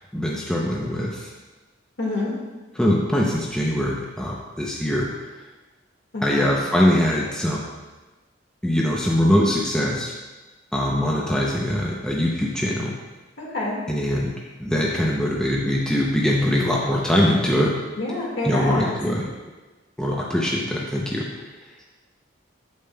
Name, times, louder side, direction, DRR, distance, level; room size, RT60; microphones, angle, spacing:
voice 1, 0.1-1.3 2.8-5.1 6.2-7.7 8.6-10.1 10.7-12.9 13.9-14.3 14.6-17.7 18.4-19.3 20.0-21.2, left 1 dB, 5° left, -3 dB, 0.6 m, -22 dB
voice 2, 2.0-2.3 6.1-6.6 13.4-13.8 18.0-18.9, left 2 dB, 65° left, -4 dB, 1.8 m, -27 dB
8.3 x 7.1 x 2.3 m, 1.2 s
head